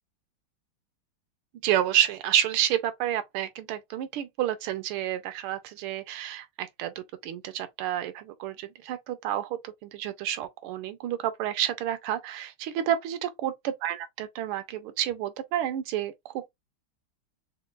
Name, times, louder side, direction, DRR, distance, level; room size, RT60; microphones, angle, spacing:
voice 1, 1.6-16.5, right 11 dB, 85° right, 1.5 m, -30 dB
5.7 x 2.2 x 2.3 m
omnidirectional pair, 2.4 m